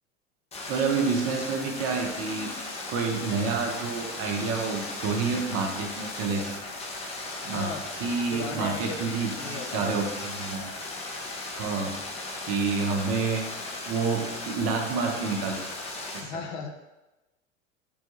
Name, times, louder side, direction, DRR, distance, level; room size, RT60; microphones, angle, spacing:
sound 1, 0.5-16.2, left 2 dB, 20° left, 0.5 m, -37 dB
voice 1, 0.7-2.5 2.9-6.6 7.2-7.7 8.0-10.7 11.6-11.9 12.3-13.4 13.9-15.6 16.1-16.3, right 4 dB, 45° right, 2 dB, 0.6 m, -29 dB
voice 2, 7.4-7.8 8.3-9.1 9.4-9.9 16.2-16.7, left 5 dB, 65° left, 5 dB, 0.5 m, -36 dB
3.5 x 2.1 x 3.0 m, 1.0 s
hypercardioid pair, 85°, 36 cm